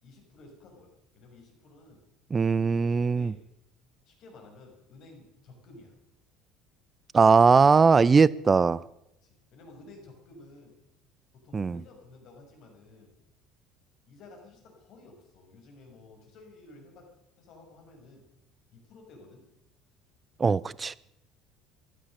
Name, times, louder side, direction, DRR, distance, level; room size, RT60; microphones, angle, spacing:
voice 1, 0.0-2.0 2.5-3.4 4.1-5.9 9.2-10.9 11.3-13.2 14.1-17.1 17.4-18.3 18.7-19.5, left 2 dB, 55° left, 6.1 m, -53 dB
voice 2, 2.3-3.3 7.1-8.8 11.5-11.8 20.4-21.0, right 5 dB, 30° right, 0.4 m, -20 dB
15.0 x 12.5 x 6.6 m
hypercardioid pair, 65°, 0 cm